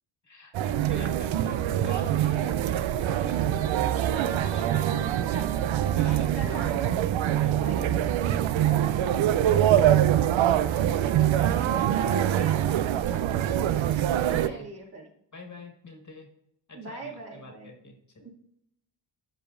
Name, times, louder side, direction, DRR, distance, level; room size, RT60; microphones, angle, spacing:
voice 1, 0.2-6.4 7.4-7.6 10.4-12.4 13.1-13.5 13.8-14.6 15.3-16.3 16.7-18.3, left 2 dB, 35° left, 4 dB, 1.7 m, -47 dB
sound 1, 0.5-14.5, right 11 dB, 75° right, 0.5 m, -24 dB
voice 2, 4.0-4.6 4.9-5.1 6.1-7.0 7.5-7.9 8.6-10.1 12.2-12.6 14.5-15.1 16.7-17.7 18.2-18.3, right 2 dB, 50° right, -2 dB, 2.4 m, -41 dB
12.0 x 4.9 x 2.5 m, 0.76 s
cardioid pair, 65°, 47 cm